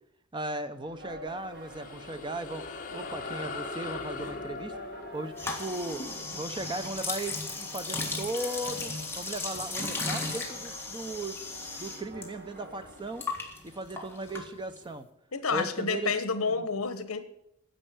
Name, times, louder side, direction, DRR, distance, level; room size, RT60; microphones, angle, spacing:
voice 1, 0.3-2.6 2.9-4.8 5.1-6.0 6.4-13.2 13.6-15.1 15.5-16.1 16.6-16.7, right 2 dB, 20° right, 10 dB, 0.7 m, -37 dB
sound 1, 0.8-13.3, right 1 dB, 50° right, 1.5 m, -48 dB
sound 2, 1.3-8.2, left 4 dB, 40° left, 1.3 m, -41 dB
sound 3, 5.3-12.3 12.5-14.9, left 3 dB, 10° left, 1.8 m, -36 dB
voice 2, 15.3-17.2, left 4 dB, 70° left, 11 dB, 1.2 m, -29 dB
10.0 x 7.6 x 8.9 m, 0.79 s
head